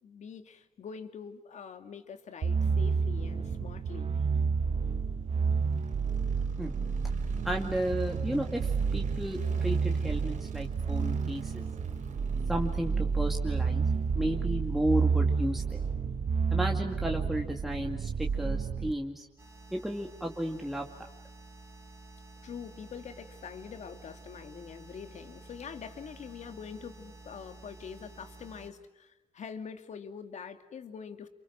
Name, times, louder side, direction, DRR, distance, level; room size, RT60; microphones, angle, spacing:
voice 1, 0.0-4.3 22.4-31.3, left 6 dB, 65° left, 7 dB, 2.5 m, -44 dB
sound 1, 2.4-18.9, right 5 dB, 50° right, 1.5 m, -30 dB
sound 2, 5.3-19.4, right 4 dB, 75° right, 4.2 m, -52 dB
voice 2, 7.4-11.6 12.5-13.8 14.1-15.8 16.5-19.3 19.7-21.1, right 1 dB, ahead, 1 dB, 2.2 m, -33 dB
sound 3, 19.4-28.7, right 2 dB, 20° right, 4.9 m, -51 dB
29.5 x 29.0 x 6.2 m, 0.96 s
wide cardioid pair, 130°, 13 cm